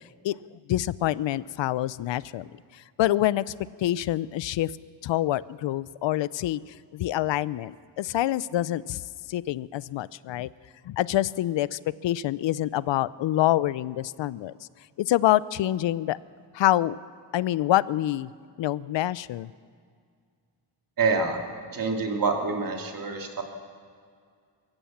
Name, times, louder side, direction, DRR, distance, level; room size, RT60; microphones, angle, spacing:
voice 1, 0.2-3.5 3.8-4.7 5.0-9.0 9.3-10.5 10.8-14.5 15.0-16.2 16.5-17.0 17.3-18.3 18.6-19.5, left 14 dB, 80° left, 19 dB, 0.6 m, -26 dB
voice 2, 21.0-21.4 21.7-23.4, right 4 dB, 50° right, 3 dB, 2.5 m, -26 dB
22.5 x 16.0 x 7.2 m, 2.1 s
wide cardioid pair, 120°, 44 cm